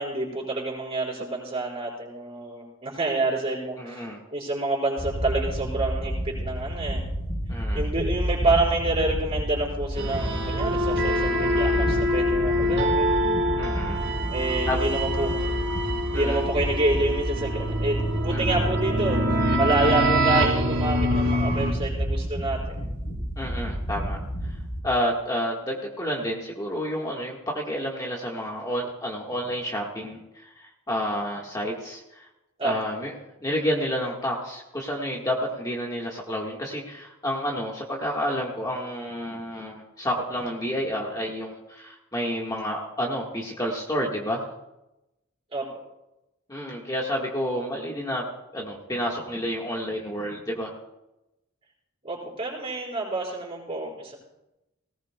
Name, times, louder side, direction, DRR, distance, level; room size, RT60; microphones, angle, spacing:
voice 1, 0.0-7.0 7.7-13.1 14.3-15.4 16.1-22.8 32.6-32.7 45.5-45.7 52.0-54.2, right 2 dB, 25° right, -2 dB, 4.8 m, -28 dB
voice 2, 3.8-4.2 7.5-7.9 13.6-14.0 14.7-14.8 16.1-16.4 18.3-18.6 23.4-24.2 24.8-32.3 32.6-33.1 33.4-44.5 46.5-48.2 48.5-50.7, equal, 15° left, -2 dB, 1.5 m, -30 dB
sound 1, 5.0-24.8, equal, 40° left, 3.3 m, -30 dB
sound 2, 10.0-21.7, equal, 55° right, 1.4 m, -25 dB
19.0 x 18.5 x 2.2 m, 0.93 s
head